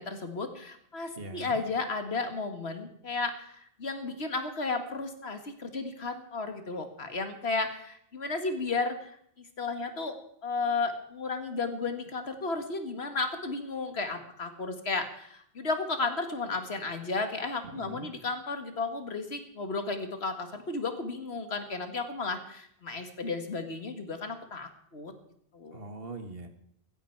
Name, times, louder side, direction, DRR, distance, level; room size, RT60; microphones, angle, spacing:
voice 1, 0.0-10.2 10.4-25.1 25.5-25.8, left 3 dB, 80° left, 7 dB, 2.1 m, -33 dB
voice 2, 1.2-1.6 17.7-18.1 25.7-26.5, right 2 dB, 65° right, 7 dB, 1.9 m, -42 dB
15.5 x 15.0 x 4.7 m, 0.68 s
omnidirectional pair, 1.1 m